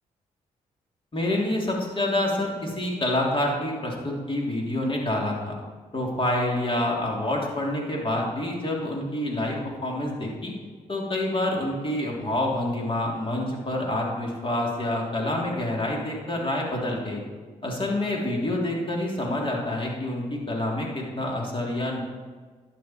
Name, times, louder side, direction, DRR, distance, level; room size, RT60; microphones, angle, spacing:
voice 1, 1.1-5.5 5.9-10.5 10.9-17.2 17.6-22.0, left 1 dB, 35° left, -2 dB, 3.4 m, -27 dB
11.5 x 9.7 x 4.5 m, 1.5 s
hypercardioid pair, 45°, 15 cm